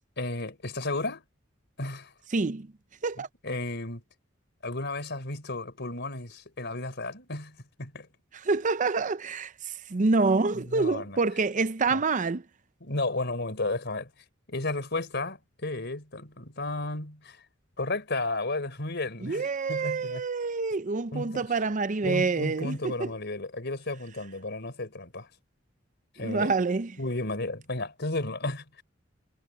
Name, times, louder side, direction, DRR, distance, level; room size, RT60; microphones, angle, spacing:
voice 1, 0.2-1.2 1.8-2.1 3.4-4.0 4.6-8.1 10.5-11.2 11.9-12.0 12.8-14.1 14.5-17.4 17.8-20.2 21.1-21.5 22.0-25.3 26.2-26.5 27.0-28.6, left 2 dB, 60° left, 4.5 m, -33 dB
voice 2, 2.3-2.7 3.0-3.3 8.3-12.4 19.2-23.1 26.2-26.9, right 4 dB, 40° right, 0.6 m, -27 dB
head